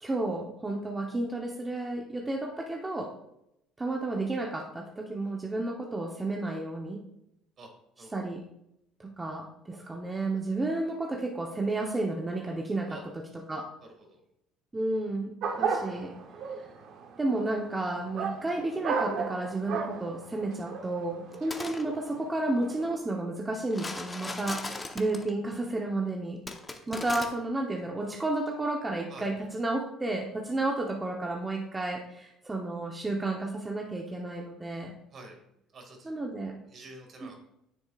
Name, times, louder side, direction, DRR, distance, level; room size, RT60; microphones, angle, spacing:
voice 1, 0.0-3.1 3.8-7.0 8.1-8.4 9.0-13.7 14.7-16.1 17.2-24.6 24.9-26.4 26.9-35.0 36.0-36.5 37.2-37.3, right 2 dB, 20° right, 0 dB, 1.0 m, -32 dB
voice 2, 13.8-14.2 24.2-24.4 24.7-24.9 29.1-29.3 35.1-35.3 35.7-36.1 36.7-37.3, right 2 dB, 45° right, 3 dB, 2.3 m, -48 dB
sound 1, 15.4-23.0, right 5 dB, 65° right, 1.1 m, -35 dB
sound 2, 21.3-21.8 23.7-25.3 26.5-27.3, left 3 dB, 20° left, 1.0 m, -38 dB
9.2 x 7.1 x 2.5 m, 0.81 s
supercardioid pair, 85°, 0 cm